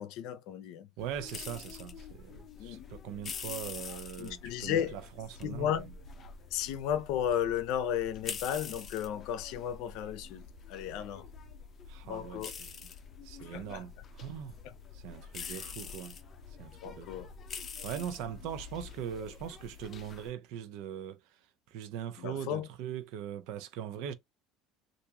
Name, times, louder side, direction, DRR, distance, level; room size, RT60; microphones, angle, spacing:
voice 1, 0.0-0.9 2.6-2.9 4.2-5.0 5.4-5.9 6.5-11.3 12.0-12.6 13.4-13.8 14.6-14.7 15.4-15.6 16.7-17.3 22.2-22.7, left 9 dB, 65° left, 0.7 m, -34 dB
sound 1, 1.0-20.3, left 6 dB, 30° left, 0.7 m, -46 dB
voice 2, 1.0-5.8 11.9-12.9 13.2-14.6 14.9-16.2 16.6-17.3 17.8-21.4 21.7-24.1, right 9 dB, 65° right, 0.7 m, -41 dB
3.5 x 2.6 x 2.9 m
cardioid pair, 150°, 0 cm